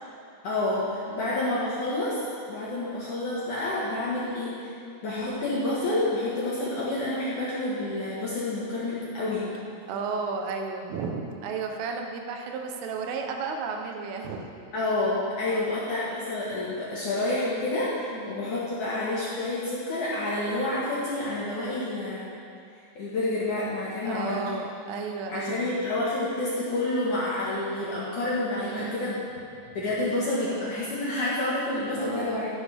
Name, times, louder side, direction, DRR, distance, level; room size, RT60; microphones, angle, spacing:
voice 1, 0.4-2.2 2.5-4.7 5.0-9.5 14.7-22.3 23.0-24.4 25.3-29.1 29.7-32.5, left 2 dB, 60° left, -9 dB, 2.2 m, -29 dB
voice 2, 1.1-1.6 4.1-4.4 9.9-14.5 15.5-15.8 18.1-18.5 24.0-25.8 28.6-29.2 32.0-32.4, right 4 dB, 85° right, 3 dB, 3.5 m, -34 dB
14.0 x 11.5 x 3.5 m, 2.5 s
omnidirectional pair, 5.7 m